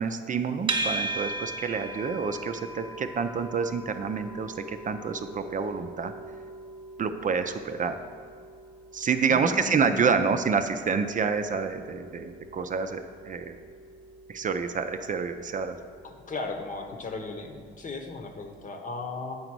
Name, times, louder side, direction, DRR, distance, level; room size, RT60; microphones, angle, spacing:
voice 1, 0.0-6.1 7.0-8.0 8.9-13.6 14.3-15.8, right 5 dB, 40° right, 7 dB, 0.5 m, -28 dB
sound 1, 0.7-17.9, right 2 dB, 25° right, 1.0 m, -40 dB
voice 2, 9.3-10.1 16.0-19.4, left 3 dB, 40° left, 4 dB, 1.0 m, -36 dB
8.5 x 3.9 x 6.0 m, 2.1 s
cardioid pair, 90°, 20 cm